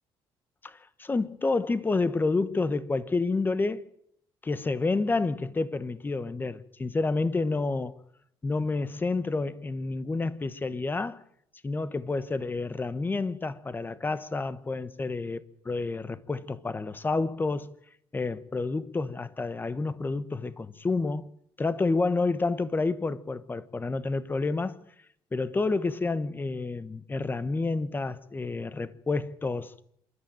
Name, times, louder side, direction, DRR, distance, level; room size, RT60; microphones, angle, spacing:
voice 1, 0.6-3.8 4.4-8.0 8.4-11.2 11.6-17.7 18.1-21.3 21.6-24.8 25.3-29.7, left 3 dB, 20° left, 1.1 m, -29 dB
27.0 x 12.0 x 9.0 m
cardioid pair, 110°, 10 cm